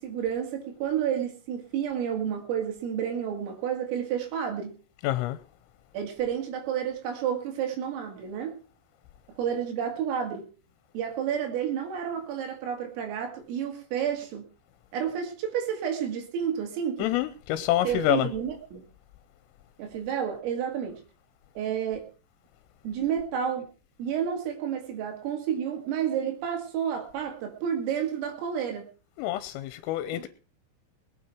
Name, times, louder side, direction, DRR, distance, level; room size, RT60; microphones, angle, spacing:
voice 1, 0.0-4.8 5.9-8.5 9.3-10.5 10.9-14.5 14.9-17.1 17.8-18.8 19.8-21.0 21.6-22.1 22.8-23.7 24.0-28.9 30.1-30.3, right 8 dB, 85° right, 3 dB, 4.9 m, -30 dB
voice 2, 5.0-5.4 17.0-18.3 29.2-30.3, left 14 dB, 85° left, 12 dB, 3.4 m, -27 dB
21.0 x 9.0 x 4.5 m, 0.36 s
omnidirectional pair, 5.8 m